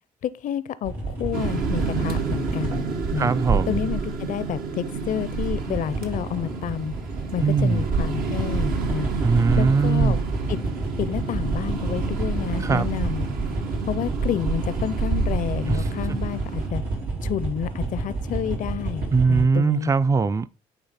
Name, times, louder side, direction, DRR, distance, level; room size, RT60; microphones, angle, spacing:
voice 1, 0.2-3.3 3.7-6.9 7.3-9.1 9.6-10.2 10.5-10.6 11.0-13.3 13.9-16.8 17.2-19.9, left 10 dB, 60° left, 0.5 m, -29 dB
sound 1, 0.8-3.0 5.0-19.4, right 3 dB, 85° right, 2.8 m, -30 dB
sound 2, 1.3-16.7, right 5 dB, 70° right, 1.2 m, -29 dB
voice 2, 3.2-3.8 7.4-7.9 9.2-10.2 12.6-12.9 15.7-15.8 19.1-20.5, right 4 dB, 20° right, 0.4 m, -20 dB
8.9 x 3.2 x 4.2 m
supercardioid pair, 65°, 15 cm